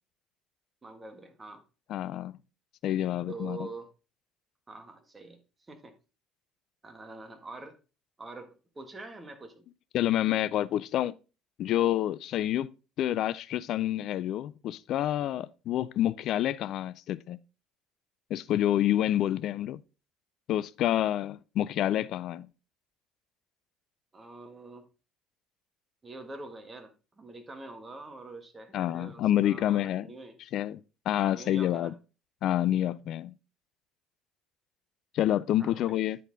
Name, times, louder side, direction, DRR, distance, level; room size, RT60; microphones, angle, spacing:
voice 1, 0.8-1.6 3.3-3.9 4.7-5.9 6.8-7.8 8.2-9.6 24.1-24.9 26.0-30.4 31.1-31.9 35.6-36.0, right 3 dB, 25° right, 1.5 m, -45 dB
voice 2, 1.9-2.3 2.8-3.7 9.9-11.1 11.6-17.4 18.3-19.8 20.5-22.5 28.7-30.1 30.5-30.8 31.1-31.9 32.4-33.4 35.1-36.2, left 12 dB, 60° left, 0.3 m, -28 dB
9.9 x 4.3 x 3.8 m
hypercardioid pair, 60°, 0 cm